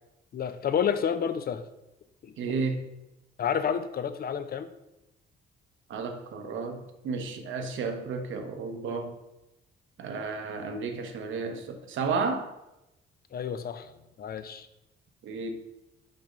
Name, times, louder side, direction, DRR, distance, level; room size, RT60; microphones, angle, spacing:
voice 1, 0.3-1.6 2.2-2.3 3.4-4.7 13.3-13.9 14.2-14.7, left 7 dB, 50° left, 11 dB, 0.7 m, -29 dB
voice 2, 2.4-2.8 5.9-9.1 10.0-12.5 15.2-15.5, right 4 dB, 75° right, 5 dB, 1.1 m, -32 dB
5.7 x 5.4 x 5.2 m, 0.93 s
cardioid pair, 90°, 20 cm